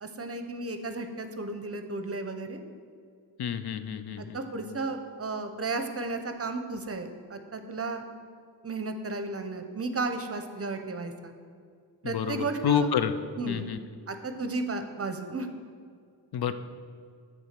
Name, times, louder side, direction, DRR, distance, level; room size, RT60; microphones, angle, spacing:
voice 1, 0.0-2.6 4.2-8.0 8.6-11.3 12.0-12.9 13.4-13.7 14.1-15.5, right 3 dB, 35° right, 7 dB, 0.7 m, -34 dB
voice 2, 3.4-4.4 12.0-13.1 13.5-13.8 16.3-16.5, left 8 dB, 65° left, 11 dB, 0.5 m, -28 dB
8.2 x 3.6 x 6.5 m, 2.1 s
cardioid pair, 70°, 41 cm